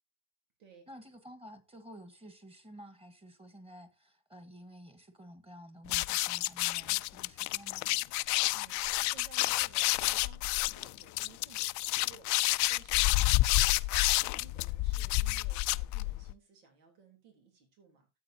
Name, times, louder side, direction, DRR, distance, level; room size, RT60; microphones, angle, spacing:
voice 1, 0.9-7.9, equal, 15° right, 1.8 m, -51 dB
sound 1, 5.9-16.3, left 20 dB, 50° left, 0.4 m, -29 dB
voice 2, 8.5-18.1, right 6 dB, 85° right, 3.8 m, -59 dB
13.0 x 8.3 x 2.8 m
supercardioid pair, 115°, 39 cm